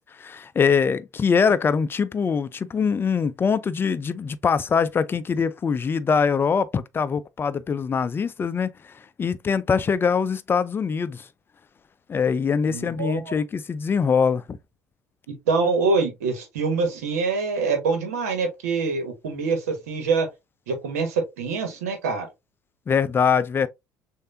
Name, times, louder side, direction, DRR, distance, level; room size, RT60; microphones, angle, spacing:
voice 1, 0.1-11.3 12.1-14.6 22.9-23.7, left 6 dB, 25° left, 0.5 m, -23 dB
voice 2, 12.7-13.3 15.3-20.3 20.7-22.3, right 4 dB, 70° right, 1.4 m, -25 dB
6.5 x 2.6 x 2.6 m
figure-of-eight pair, 60°, 8 cm